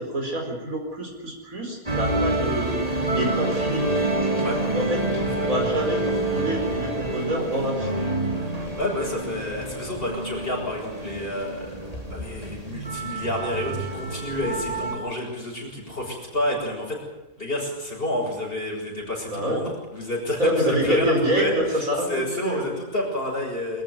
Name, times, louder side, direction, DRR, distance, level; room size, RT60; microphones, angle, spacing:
voice 1, 0.0-2.7 3.1-3.8 4.6-8.0 19.3-19.6 20.4-22.7, equal, 65° right, 2 dB, 5.0 m, -26 dB
sound 1, 1.9-14.9, right 2 dB, 25° right, 3.2 m, -28 dB
voice 2, 8.8-11.8 12.1-17.0 17.4-23.8, left 1 dB, 40° left, -2 dB, 7.0 m, -29 dB
23.5 x 14.0 x 9.6 m, 1.0 s
omnidirectional pair, 1.5 m